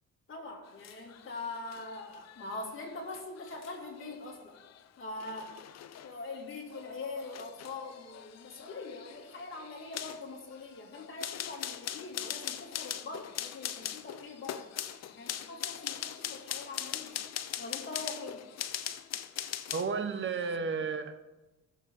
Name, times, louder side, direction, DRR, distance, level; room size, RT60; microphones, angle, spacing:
voice 1, 0.3-4.5 5.0-5.6 6.0-14.7 15.1-17.1 17.6-18.4, left 3 dB, 40° left, -1 dB, 3.0 m, -43 dB
sound 1, 0.7-20.0 20.3-20.6, left 10 dB, 60° left, 0.7 m, -41 dB
voice 2, 19.7-21.4, right 5 dB, 40° right, 8 dB, 1.2 m, -33 dB
16.0 x 7.1 x 4.0 m, 1.1 s
cardioid pair, 90°, 30 cm